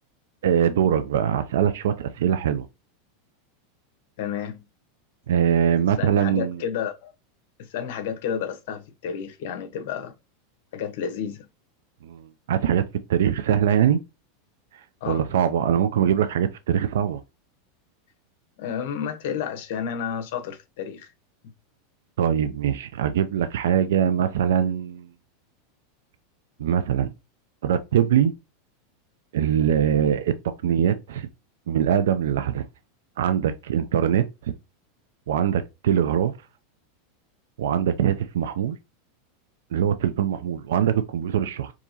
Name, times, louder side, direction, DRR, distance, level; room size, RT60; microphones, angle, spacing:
voice 1, 0.4-2.7 5.3-6.6 12.0-12.2 12.5-12.8 13.1-14.0 15.1-17.2 22.2-25.1 26.6-27.1 27.6-28.3 29.3-30.3 30.6-31.3 31.7-32.7 33.2-34.3 35.3-36.3 37.6-38.8 39.7-41.7, right 9 dB, 85° right, 0.4 m, -22 dB
voice 2, 4.2-4.6 6.0-7.1 7.6-10.1 10.7-11.5 15.0-15.2 18.6-21.1, left 8 dB, 65° left, 0.9 m, -31 dB
4.6 x 2.8 x 2.7 m
supercardioid pair, 145°, 0 cm